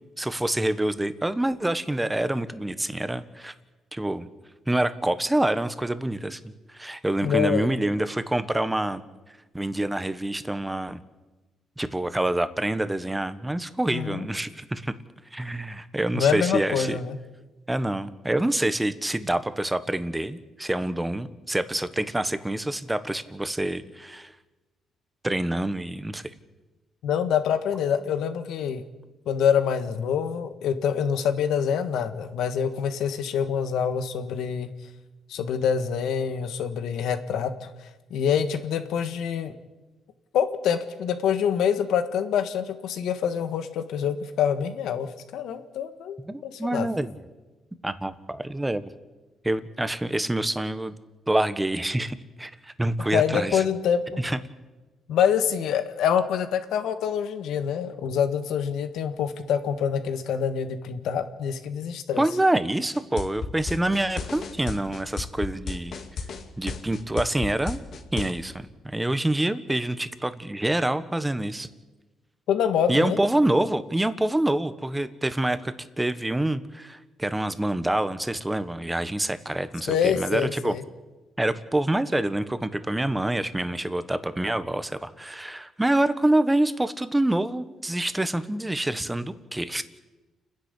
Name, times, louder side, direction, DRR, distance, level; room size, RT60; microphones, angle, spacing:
voice 1, 0.2-3.5 3.9-4.3 4.7-9.0 9.5-11.0 11.8-14.9 15.3-17.0 17.7-24.3 25.2-26.2 46.2-47.2 47.8-48.9 49.4-51.0 51.3-53.6 54.2-54.4 62.2-65.9 66.6-67.8 68.1-71.7 72.9-80.7 81.4-89.8, right 1 dB, 10° right, 12 dB, 1.3 m, -26 dB
voice 2, 7.2-7.7 13.9-14.3 16.1-17.2 27.0-28.8 29.3-34.7 35.3-37.7 38.1-39.5 40.3-46.2 46.4-46.9 53.0-54.2 55.1-62.2 72.5-73.2 79.9-80.8, left 8 dB, 80° left, 9 dB, 1.5 m, -26 dB
sound 1, 62.9-68.3, left 5 dB, 60° left, 2.5 m, -33 dB
29.5 x 10.5 x 8.4 m, 1.2 s
cardioid pair, 90°, 0 cm